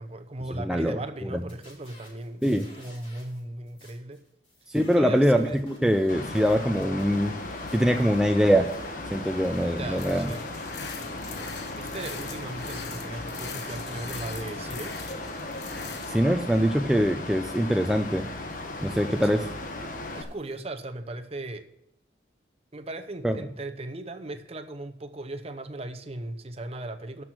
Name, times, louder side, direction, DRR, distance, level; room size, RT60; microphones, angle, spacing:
voice 1, 0.0-2.5 2.7-4.2 4.9-5.6 9.2-9.4 9.7-10.5 11.0-15.1 19.2-19.3 20.1-21.7 22.7-27.2, right 2 dB, 35° right, 8 dB, 0.8 m, -38 dB
voice 2, 0.6-1.0 1.3-1.4 2.4-2.7 4.7-7.3 7.7-8.7 9.1-10.3 16.1-18.3 18.8-19.5 23.2-23.4, equal, 5° right, 4 dB, 0.4 m, -23 dB
sound 1, 1.3-3.4 3.7-10.1 10.4-12.7 13.1-20.6, left 1 dB, 30° left, 4.9 m, -54 dB
Mechanical fan, 6.1-20.2, left 2 dB, 45° left, 1.3 m, -37 dB
sound 2, 10.0-16.1, left 5 dB, 65° left, 1.2 m, -42 dB
12.5 x 6.1 x 6.2 m, 0.81 s
head